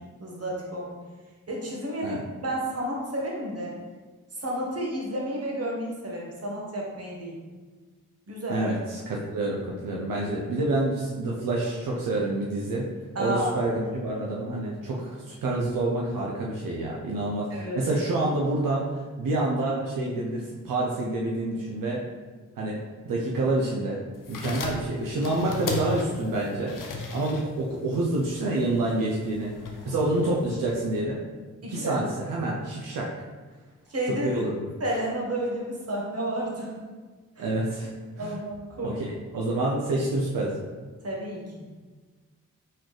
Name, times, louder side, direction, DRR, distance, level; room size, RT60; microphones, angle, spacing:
voice 1, 0.2-1.0 1.5-3.8 4.3-7.4 8.3-8.6 13.1-13.6 17.5-17.8 31.6-31.9 33.9-34.3 34.8-36.7 37.4-37.5 38.2-39.0 41.0-41.7, right 1 dB, 45° right, -3 dB, 1.4 m, -31 dB
voice 2, 8.5-12.9 13.2-22.0 22.6-22.8 23.0-24.0 24.3-26.8 27.1-29.5 29.8-31.2 31.7-33.1 34.2-34.7 37.4-37.9 38.2-38.3 38.8-40.7, right 2 dB, 85° right, -3 dB, 0.7 m, -28 dB
sound 1, 24.1-31.0, left 3 dB, 70° left, 0.7 m, -37 dB
4.3 x 3.8 x 3.2 m, 1.4 s
cardioid pair, 50°, 33 cm